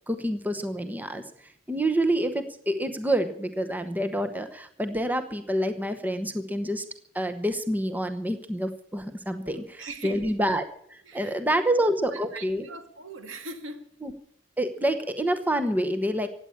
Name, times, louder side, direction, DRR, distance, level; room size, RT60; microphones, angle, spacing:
voice 1, 0.1-1.2 1.7-6.8 7.1-12.7 14.0-14.1 14.6-16.3, right 1 dB, 10° right, 7 dB, 1.0 m, -27 dB
voice 2, 9.4-10.4 11.0-11.4 12.1-13.8, right 2 dB, 75° right, 7 dB, 2.3 m, -41 dB
16.0 x 9.9 x 8.6 m, 0.68 s
head